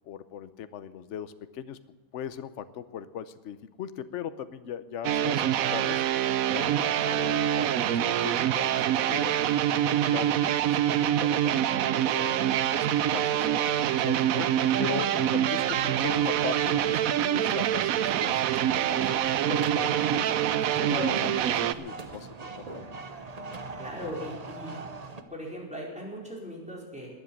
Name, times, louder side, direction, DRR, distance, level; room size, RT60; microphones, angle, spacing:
voice 1, 0.0-1.8 2.1-6.0 6.5-9.4 9.7-12.4 12.7-20.3 20.6-22.8, left 9 dB, 60° left, 12 dB, 1.0 m, -39 dB
sound 1, 5.0-21.7, right 11 dB, 75° right, 1.0 m, -25 dB
sound 2, 15.6-25.2, right 3 dB, 30° right, 0.9 m, -42 dB
voice 2, 23.8-24.8 25.3-27.1, equal, 5° right, -3 dB, 4.6 m, -39 dB
20.5 x 8.0 x 7.2 m, 1.4 s
omnidirectional pair, 1.5 m